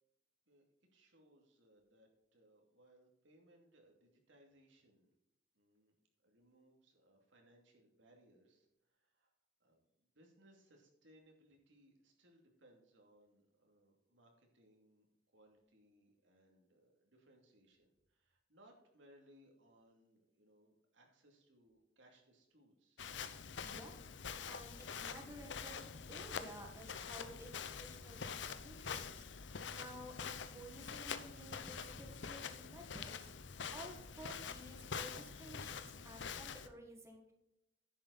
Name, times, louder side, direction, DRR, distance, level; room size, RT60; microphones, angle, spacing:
voice 1, 0.9-5.1 5.5-5.9 6.2-9.3 9.6-15.1 15.3-23.0, right 1 dB, 85° right, 1 dB, 2.6 m, -68 dB
Walk footsteps, 23.0-36.7, left 6 dB, 70° left, 0.7 m, -46 dB
voice 2, 24.5-37.3, equal, 15° right, 1 dB, 1.7 m, -54 dB
10.5 x 7.6 x 4.1 m, 0.84 s
head